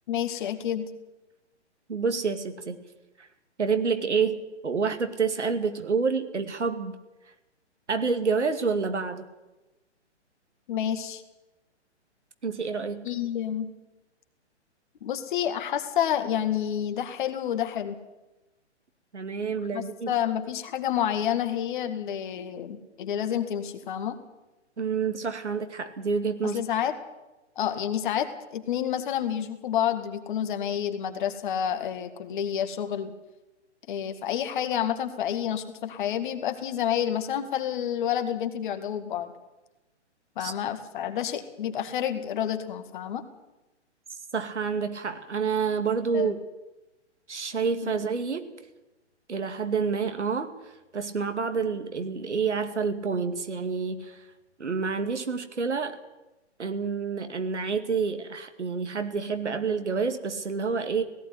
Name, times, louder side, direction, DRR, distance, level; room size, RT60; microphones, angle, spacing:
voice 1, 0.1-0.9 10.7-11.2 13.0-13.7 15.0-18.0 19.7-24.2 26.4-26.9 27.6-33.1 33.9-39.3 40.4-43.2 46.1-46.3 47.8-47.9, left 9 dB, 45° left, 8 dB, 2.1 m, -29 dB
voice 2, 1.9-2.9 3.2-3.3 3.6-7.0 7.9-9.3 12.4-13.1 19.1-20.1 24.8-26.6 40.4-40.5 44.3-46.4 47.3-48.6 49.3-54.3 54.6-56.0 56.6-61.0, right 5 dB, 75° right, 8 dB, 2.4 m, -28 dB
17.5 x 15.5 x 9.8 m, 1.0 s
figure-of-eight pair, 125°, 36 cm